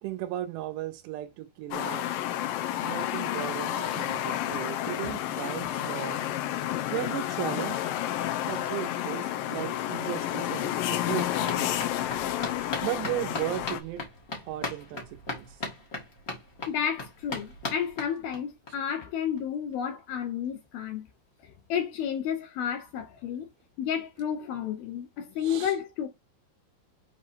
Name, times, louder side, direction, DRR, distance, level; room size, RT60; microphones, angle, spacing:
voice 1, 0.0-2.1 2.8-6.3 6.9-7.8 8.5-11.8 12.8-14.1 14.5-15.6 25.4-25.7, right 14 dB, 80° right, 2.5 m, -36 dB
sound 1, 1.7-13.8, left 12 dB, 90° left, 1.9 m, -30 dB
sound 2, 10.2-18.7 19.0-19.1 19.4-19.5 19.7-19.8, left 3 dB, 50° left, 1.0 m, -39 dB
voice 2, 16.7-21.1 21.4-23.5 23.8-26.1, left 8 dB, 75° left, 2.3 m, -31 dB
8.0 x 3.2 x 4.3 m
omnidirectional pair, 5.2 m